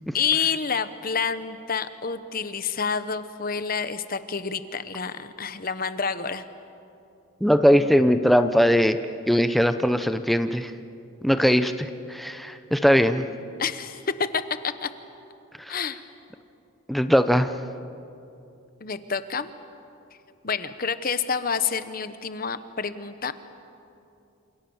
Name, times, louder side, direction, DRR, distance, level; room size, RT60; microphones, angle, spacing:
voice 1, 0.1-6.4 13.6-14.9 15.7-16.0 18.8-19.5 20.4-23.3, left 6 dB, 45° left, 12 dB, 1.1 m, -28 dB
voice 2, 7.4-9.0 9.3-10.7 11.2-13.3 15.6-15.8 16.9-17.5, equal, ahead, 9 dB, 0.7 m, -20 dB
28.0 x 27.5 x 7.2 m, 2.7 s
head